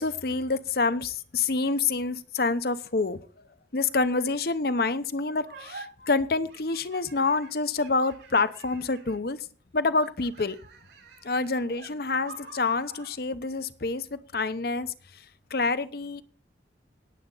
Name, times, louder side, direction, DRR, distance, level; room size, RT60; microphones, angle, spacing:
voice 1, 0.0-3.2 3.7-9.4 9.7-10.6 11.2-15.2 15.5-16.2, left 3 dB, 60° left, 14 dB, 0.8 m, -27 dB
sound 1, 5.4-5.8 6.5-9.3 9.9-13.2, right 4 dB, 85° right, 5.8 m, -48 dB
18.5 x 7.8 x 3.9 m, 0.41 s
head